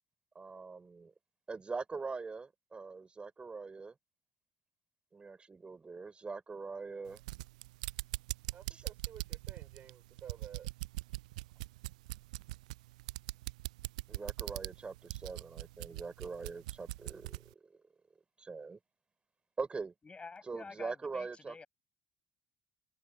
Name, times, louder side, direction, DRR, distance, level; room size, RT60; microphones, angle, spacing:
voice 1, 0.3-1.1 1.5-3.9 5.1-7.2 8.7-8.8 14.1-17.8 18.4-18.8 19.6-19.9 20.4-21.6, right 4 dB, 30° right, 4.5 m, -42 dB
sound 1, 7.1-17.5, right 19 dB, 75° right, 0.4 m, -42 dB
voice 2, 8.5-10.7, right 9 dB, 50° right, 6.0 m, -52 dB
voice 3, 20.0-21.7, left 4 dB, 30° left, 7.3 m, -49 dB
figure-of-eight pair, 50°, 4 cm